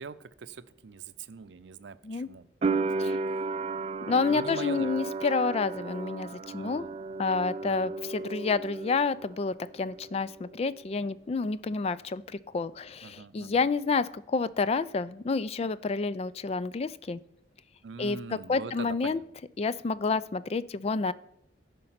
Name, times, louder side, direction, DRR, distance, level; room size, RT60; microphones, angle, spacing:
voice 1, 0.0-2.5 2.9-3.2 4.1-5.1 6.5-7.1 7.6-7.9 13.0-13.7 17.8-19.4, right 5 dB, 90° right, 14 dB, 0.5 m, -43 dB
sound 1, 2.6-9.4 9.7-10.6, right 3 dB, 35° right, 0.4 m, -34 dB
voice 2, 4.1-6.9 7.2-12.2 12.5-17.2 18.0-19.2 19.6-21.1, left 4 dB, 35° left, 17 dB, 0.3 m, -29 dB
14.0 x 5.3 x 5.7 m, 0.77 s
head